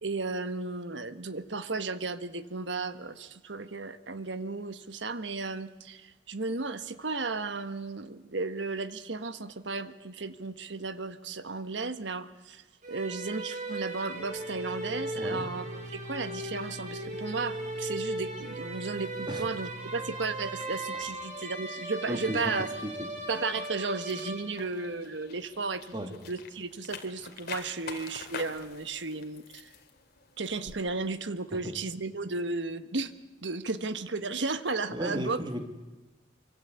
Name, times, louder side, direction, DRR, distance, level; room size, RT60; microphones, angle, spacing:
voice 1, 0.0-12.6 12.9-22.7 23.3-25.9 26.2-29.7 30.4-33.1 33.4-35.4, right 3 dB, 75° right, 11 dB, 1.4 m, -34 dB
sound 1, 12.8-24.9, right 2 dB, 45° right, 5.5 m, -38 dB
sound 2, 14.1-24.5, right 1 dB, 85° left, 1.7 m, -46 dB
voice 2, 15.1-15.4 19.3-19.4 22.1-22.4 22.8-22.9 25.9-26.1 31.6-31.7 34.9-35.6, equal, 25° right, 5 dB, 2.9 m, -34 dB
sound 3, 16.2-30.8, left 5 dB, 60° left, 2.8 m, -49 dB
25.0 x 25.0 x 8.3 m, 1.2 s
head